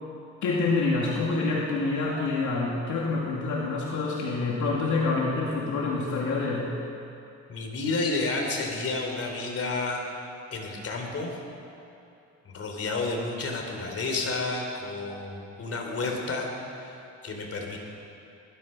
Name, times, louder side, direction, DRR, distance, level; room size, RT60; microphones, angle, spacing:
voice 1, 0.4-6.7, left 3 dB, 75° left, -4 dB, 2.4 m, -27 dB
voice 2, 7.5-10.0 10.5-11.4 12.4-16.5 16.7-17.8, left 3 dB, 50° left, 1 dB, 3.3 m, -31 dB
19.5 x 12.0 x 5.7 m, 2.8 s
cardioid pair, 90°, 30 cm